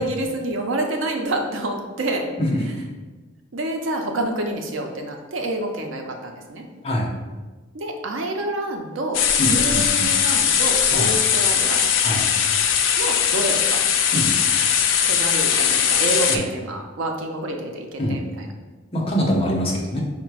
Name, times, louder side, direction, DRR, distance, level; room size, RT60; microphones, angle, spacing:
voice 1, 0.0-2.2 3.5-6.6 7.7-11.8 13.0-13.8 15.0-18.5, right 1 dB, 90° right, 3 dB, 0.6 m, -28 dB
voice 2, 2.4-2.7 6.8-7.2 9.4-10.1 10.9-11.1 12.0-12.3 14.1-14.3 16.3-16.4 18.0-18.2 18.9-20.0, equal, 30° left, -2 dB, 0.8 m, -24 dB
sound 1, 9.1-16.4, left 8 dB, 80° left, 0.4 m, -20 dB
4.9 x 2.1 x 4.6 m, 1.3 s
head